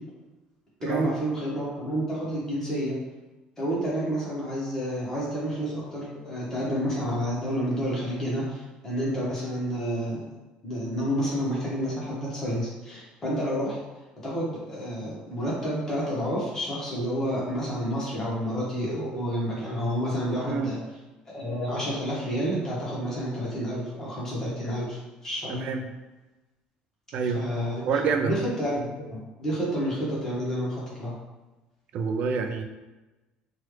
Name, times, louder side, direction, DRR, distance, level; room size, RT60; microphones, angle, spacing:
voice 1, 0.8-3.0 3.6-10.3 10.6-13.8 14.2-20.8 21.3-25.6 27.3-27.9 28.2-31.1, equal, 15° left, -6 dB, 1.1 m, -29 dB
voice 2, 20.4-20.7 25.5-25.9 27.1-27.5 27.8-28.4 31.9-32.6, right 5 dB, 55° right, 5 dB, 0.3 m, -27 dB
3.1 x 2.3 x 3.2 m, 1.1 s
cardioid pair, 135°, 3 cm